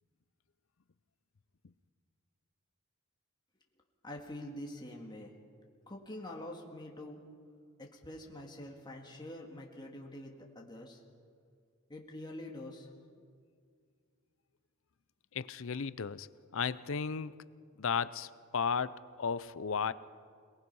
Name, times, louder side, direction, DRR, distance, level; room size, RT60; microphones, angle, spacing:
voice 1, 4.0-5.3 5.9-7.2 7.8-11.0 11.9-12.9, left 1 dB, 20° left, 0 dB, 2.0 m, -45 dB
voice 2, 15.3-16.3 16.5-17.4 17.8-19.9, left 6 dB, 60° left, 16 dB, 0.6 m, -34 dB
27.5 x 19.0 x 5.5 m, 2.1 s
head